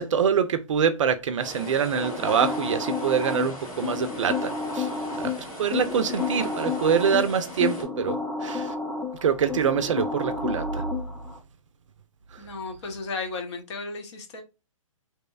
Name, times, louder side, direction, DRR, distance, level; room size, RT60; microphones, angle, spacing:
voice 1, 0.0-4.9 5.2-5.3 5.6-8.7 9.2-10.8, right 7 dB, 60° right, 0.4 m, -25 dB
sound 1, 1.4-7.9, equal, 80° left, 1.3 m, -39 dB
sound 2, 1.9-11.4, left 4 dB, 10° left, 0.5 m, -31 dB
voice 2, 12.4-14.4, left 3 dB, 55° left, 0.8 m, -34 dB
2.9 x 2.0 x 2.2 m
figure-of-eight pair, 125°, 18 cm